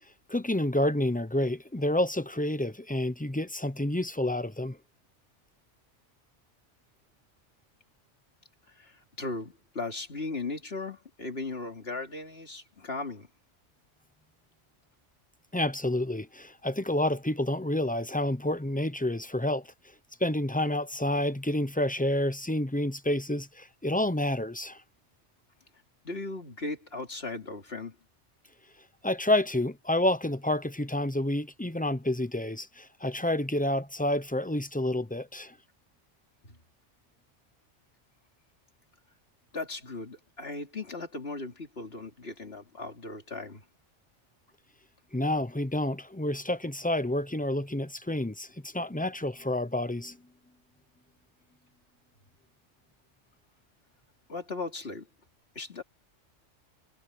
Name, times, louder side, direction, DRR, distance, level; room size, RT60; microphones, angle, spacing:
voice 1, 0.3-4.8 15.5-19.7 20.2-24.8 29.0-35.5 45.1-50.2, left 1 dB, 10° left, 0.8 m, -29 dB
voice 2, 8.7-13.3 26.0-27.9 36.4-36.6 39.5-43.6 54.3-55.1 55.5-55.8, left 3 dB, 55° left, 3.3 m, -37 dB
omnidirectional pair, 1.2 m